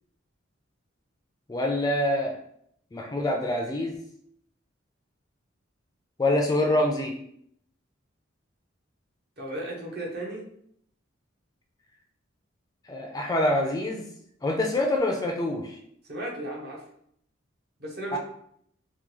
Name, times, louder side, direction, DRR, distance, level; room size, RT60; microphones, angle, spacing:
voice 1, 1.5-2.4 2.9-4.0 6.2-7.1 12.8-14.1 14.4-15.8 18.1-18.2, left 1 dB, 20° left, 2 dB, 0.3 m, -25 dB
voice 2, 9.4-10.4 16.1-16.8 17.8-18.2, right 1 dB, 55° right, -2 dB, 0.9 m, -35 dB
3.5 x 2.2 x 3.0 m, 0.68 s
head